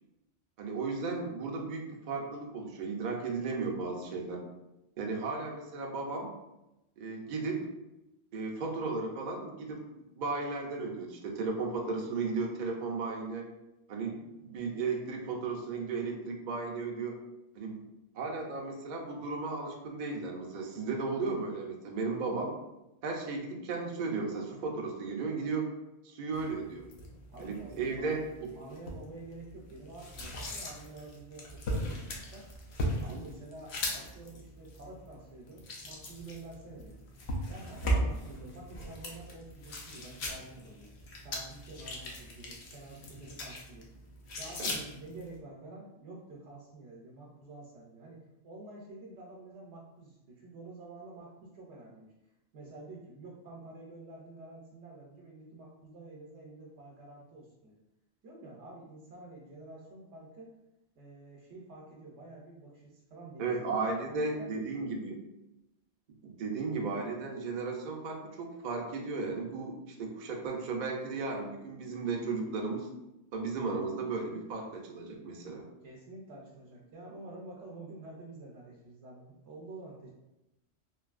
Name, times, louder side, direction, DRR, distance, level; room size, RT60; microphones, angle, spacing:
voice 1, 0.6-4.4 5.0-6.3 7.0-7.7 8.3-13.5 13.9-17.2 17.6-17.8 18.1-22.5 23.0-25.6 26.0-26.8 27.4-28.5 33.1-33.2 44.6-44.7 63.4-65.2 66.2-72.9 73.3-75.7, right 4 dB, 55° right, 1 dB, 0.5 m, -35 dB
sound 1, 26.3-45.4, equal, 70° left, 0.9 m, -39 dB
voice 2, 27.3-28.3 28.6-32.5 33.0-37.0 37.5-40.9 41.2-43.9 44.4-52.1 52.5-57.8 58.2-60.5 61.0-63.6 64.0-64.9 75.8-80.1, right 2 dB, 75° right, -3 dB, 0.9 m, -49 dB
3.1 x 2.6 x 2.4 m, 0.93 s
omnidirectional pair, 1.2 m